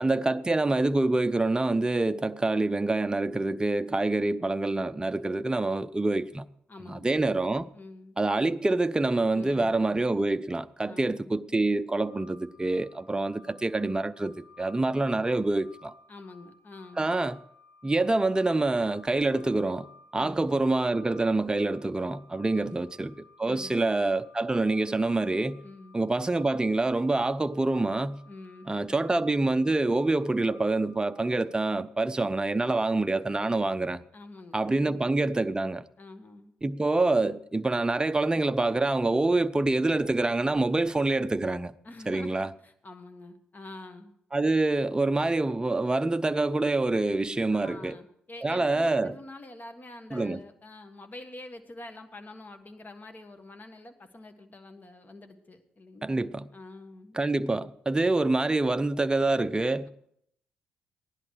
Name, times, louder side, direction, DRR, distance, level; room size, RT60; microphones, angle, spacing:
voice 1, 0.0-6.5 6.8-7.7 8.2-15.9 17.0-17.4 17.8-19.9 20.1-23.1 23.4-25.6 25.9-28.2 28.7-34.0 34.5-35.8 36.6-41.7 42.1-42.5 44.3-48.0 48.4-49.2 50.1-50.4 56.0-56.5 57.1-59.9, right 2 dB, 15° right, 0.6 m, -26 dB
voice 2, 6.7-7.1 7.7-8.2 9.3-10.0 10.8-11.4 16.1-17.1 20.1-20.5 22.5-22.9 23.4-23.9 25.6-26.0 28.3-29.0 34.1-35.1 36.0-36.5 41.8-44.2 47.5-57.2, left 2 dB, 35° left, 1.6 m, -46 dB
sound 1, 12.0-31.4, left 4 dB, 75° left, 3.9 m, -57 dB
15.5 x 11.0 x 4.8 m
hypercardioid pair, 40°, 5 cm